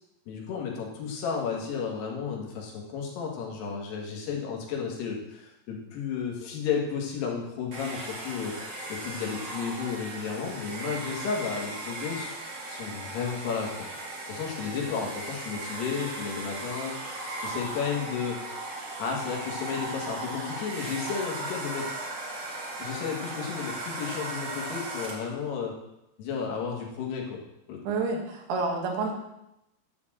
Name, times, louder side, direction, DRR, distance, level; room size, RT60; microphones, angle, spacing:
voice 1, 0.3-8.6 8.9-13.9 14.3-18.7 19.0-21.9 22.8-25.8 26.2-27.4 27.7-27.8, left 6 dB, 75° left, 0 dB, 3.6 m, -33 dB
Domestic sounds home sounds, 7.7-25.4, right 2 dB, 50° right, 1.4 m, -37 dB
voice 2, 27.8-29.1, right 3 dB, 75° right, 1 dB, 3.4 m, -29 dB
11.5 x 4.3 x 7.3 m, 0.86 s
omnidirectional pair, 4.9 m